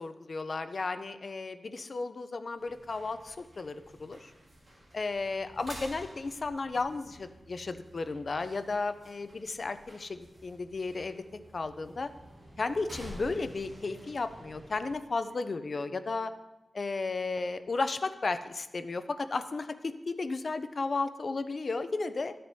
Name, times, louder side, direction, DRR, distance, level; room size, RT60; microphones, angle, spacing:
voice 1, 0.0-4.3 4.9-11.2 11.5-12.1 12.6-16.3 16.7-22.3, left 3 dB, 45° left, 10 dB, 0.4 m, -34 dB
sound 1, 2.6-14.9, equal, 45° right, 2.2 m, -51 dB
12.5 x 7.5 x 2.7 m, 1.0 s
wide cardioid pair, 145°, 0 cm